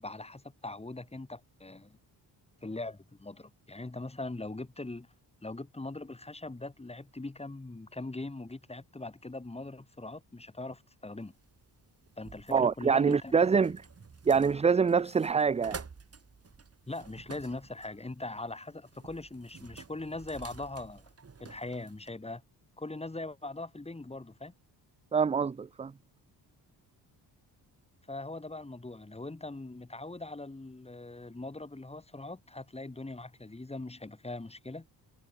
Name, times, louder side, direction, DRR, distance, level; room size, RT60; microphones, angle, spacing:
voice 1, 0.0-2.0 2.6-5.1 5.4-11.3 12.2-13.6 16.9-21.0 21.4-22.4 22.8-24.5 28.1-34.9, left 2 dB, 15° left, 3.0 m, -41 dB
sound 1, 11.2-22.1, right 5 dB, 35° right, 4.1 m, -50 dB
voice 2, 12.5-13.8 14.3-15.8 25.1-25.9, right 6 dB, 15° right, 0.4 m, -25 dB
cardioid pair, 95°, 42 cm